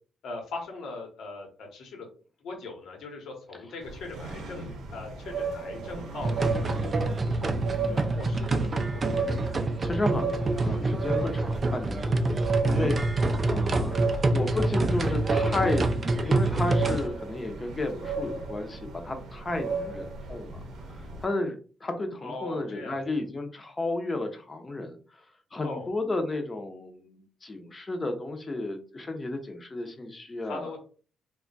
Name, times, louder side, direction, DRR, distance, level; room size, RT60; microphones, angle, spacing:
voice 1, 0.2-2.1 2.4-7.5 7.9-9.3 22.2-23.2 25.6-25.9 30.4-30.8, left 3 dB, 75° left, 2 dB, 1.0 m, -40 dB
sound 1, 3.8-21.2, right 4 dB, 75° right, 0.7 m, -35 dB
sound 2, 6.2-17.1, right 2 dB, 35° right, 0.3 m, -26 dB
voice 2, 9.8-12.3 12.6-20.6 21.0-21.6 21.8-25.0 25.5-30.8, left 2 dB, 25° left, 6 dB, 0.6 m, -32 dB
2.2 x 2.1 x 3.8 m, 0.39 s
cardioid pair, 90°, 0 cm